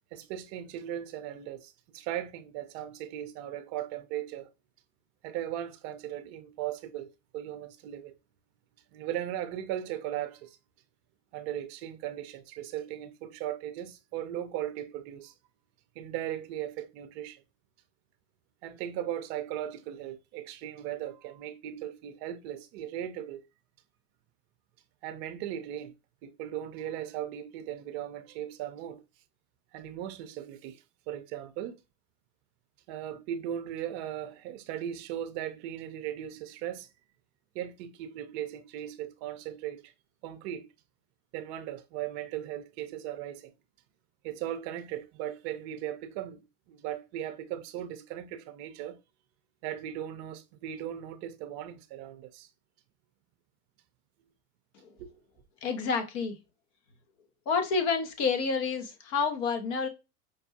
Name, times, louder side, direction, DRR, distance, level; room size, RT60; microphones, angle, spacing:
voice 1, 0.1-4.5 5.2-8.2 8.9-10.6 11.3-15.3 16.0-17.4 18.6-23.4 25.0-25.9 26.2-29.0 29.7-31.8 32.9-36.9 37.5-39.9 40.2-40.7 41.3-43.5 44.2-49.0 49.6-52.5 55.0-55.1, right 11 dB, 45° right, 0.6 m, -38 dB
voice 2, 55.6-56.4 57.5-59.9, left 5 dB, 50° left, 1.1 m, -29 dB
5.2 x 2.3 x 2.7 m
hypercardioid pair, 110°, 47 cm